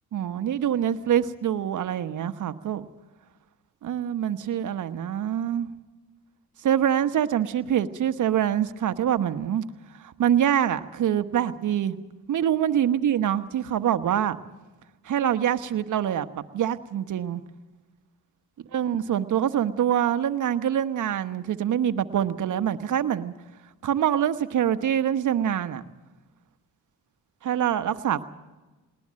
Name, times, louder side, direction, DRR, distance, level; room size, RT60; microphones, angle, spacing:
voice 1, 0.1-2.9 3.8-5.7 6.6-9.6 10.0-12.0 12.3-14.4 15.0-16.3 16.5-17.4 18.7-23.3 23.8-25.8 27.4-28.2, right 10 dB, 60° right, 10 dB, 1.2 m, -25 dB
20.0 x 19.5 x 7.6 m, 1.2 s
supercardioid pair, 65°, 34 cm